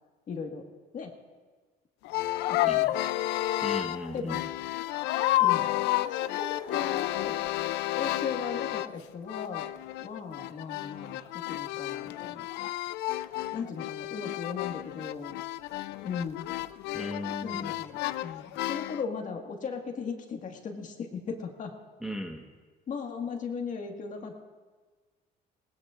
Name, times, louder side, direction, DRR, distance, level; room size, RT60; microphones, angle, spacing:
voice 1, 0.3-0.7 0.9-1.1 2.5-3.0 4.1-4.5 5.4-5.7 6.1-7.4 7.9-9.7 10.0-12.5 13.5-15.4 16.0-16.5 17.4-21.7 22.9-24.3, left 5 dB, 50° left, 3 dB, 1.7 m, -37 dB
sound 1, 2.0-9.0 9.3-19.0, left 15 dB, 85° left, 0.4 m, -31 dB
voice 2, 3.6-4.4 16.9-17.7 22.0-22.4, equal, 5° right, 1 dB, 1.3 m, -37 dB
20.5 x 19.0 x 2.5 m, 1.4 s
cardioid pair, 110°, 17 cm